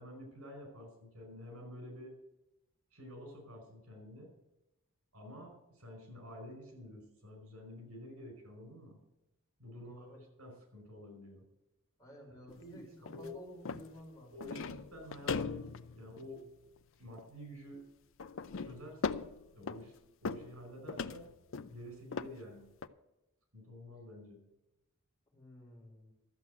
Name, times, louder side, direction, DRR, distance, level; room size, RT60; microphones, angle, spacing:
voice 1, 0.0-2.1 2.9-4.3 5.1-9.0 9.6-10.1 10.4-11.4 12.3-13.4 14.3-16.4 17.0-17.8 18.6-19.2 19.5-21.4 21.7-22.7 23.5-24.4, equal, 90° right, 3 dB, 5.0 m, -50 dB
voice 2, 9.7-10.2 12.0-14.3 25.3-26.1, equal, 15° left, -3 dB, 4.3 m, -53 dB
sound 1, 12.5-12.6 13.1-13.4 13.6-14.0 14.4-16.8 17.2-17.3 18.2-20.0 20.2-20.6 20.9-21.7 22.1-22.3 22.8-22.9, left 5 dB, 60° left, 0.6 m, -39 dB
13.0 x 7.5 x 7.9 m, 0.93 s
head